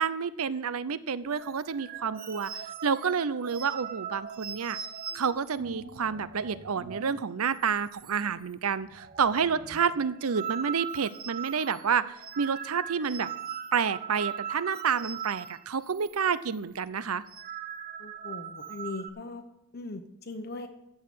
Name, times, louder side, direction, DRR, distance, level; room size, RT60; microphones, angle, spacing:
voice 1, 0.0-2.5 2.8-4.8 5.1-13.3 13.7-17.2, right 6 dB, 85° right, 16 dB, 0.6 m, -29 dB
sound 1, 1.3-7.3 7.5-7.7 8.0-8.5 8.8-16.2 16.4-16.6 17.1-19.1, right 8 dB, 45° right, 0.9 m, -40 dB
voice 2, 18.0-19.4 19.7-20.7, left 3 dB, 45° left, 7 dB, 0.8 m, -39 dB
14.5 x 4.8 x 8.5 m, 0.86 s
head